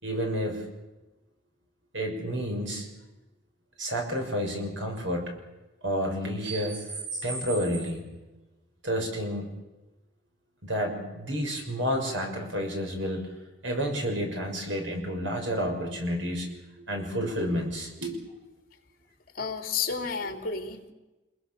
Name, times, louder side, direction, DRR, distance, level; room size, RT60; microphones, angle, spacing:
voice 1, 0.0-0.7 1.9-2.9 3.8-5.3 5.8-8.0 8.8-9.5 10.6-13.3 13.6-16.5 16.8-18.4, equal, 75° right, 2 dB, 6.1 m, -30 dB
voice 2, 19.3-20.9, left 5 dB, 50° left, 5 dB, 3.5 m, -31 dB
26.5 x 21.5 x 7.1 m, 1.1 s
head